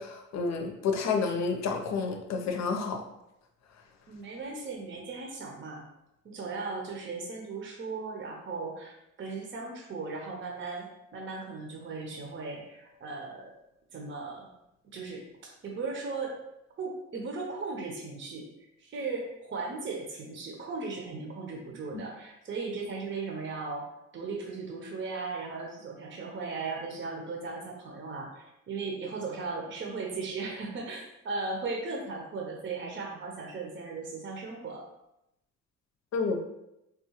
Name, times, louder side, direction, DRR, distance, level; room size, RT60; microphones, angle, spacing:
voice 1, 0.0-3.0 21.9-22.0 36.1-36.4, left 4 dB, 65° left, 4 dB, 0.6 m, -30 dB
voice 2, 4.1-5.8 6.2-10.9 11.1-13.5 13.9-14.5 14.9-16.4 16.8-18.5 18.8-23.9 24.1-34.8, right 4 dB, 40° right, 0 dB, 0.7 m, -37 dB
3.6 x 2.4 x 2.9 m, 0.85 s
cardioid pair, 90°, 30 cm